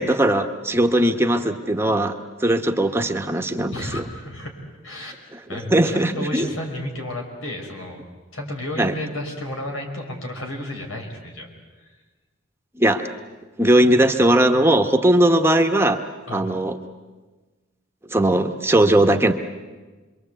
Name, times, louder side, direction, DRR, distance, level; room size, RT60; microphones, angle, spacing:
voice 1, 0.0-2.1 2.4-4.0 5.3-6.5 8.8-8.9 12.8-13.1 13.6-16.0 16.3-16.8 18.1-19.3, right 1 dB, 10° right, 5 dB, 1.0 m, -19 dB
voice 2, 3.7-5.2 5.5-8.1 8.3-11.5 11.8-11.9 16.3-16.6, left 1 dB, 85° left, 2 dB, 5.3 m, -32 dB
27.0 x 23.0 x 8.2 m, 1.3 s
head